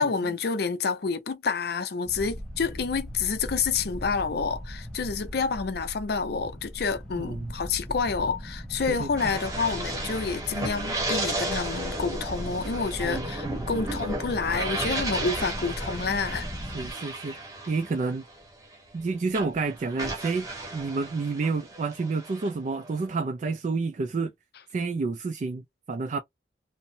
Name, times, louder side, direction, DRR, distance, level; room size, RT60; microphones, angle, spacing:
voice 1, 0.0-16.5, left 5 dB, 60° left, 0.5 m, -28 dB
sound 1, 2.1-16.9, equal, ahead, 0.6 m, -38 dB
voice 2, 7.2-7.5 8.9-9.4 13.0-13.7 16.7-17.4 17.7-18.2 18.9-24.3 24.7-26.2, right 4 dB, 45° right, 0.3 m, -30 dB
sound 2, 9.2-19.0 19.3-23.1, right 1 dB, 20° right, 0.9 m, -34 dB
2.7 x 2.1 x 2.6 m
head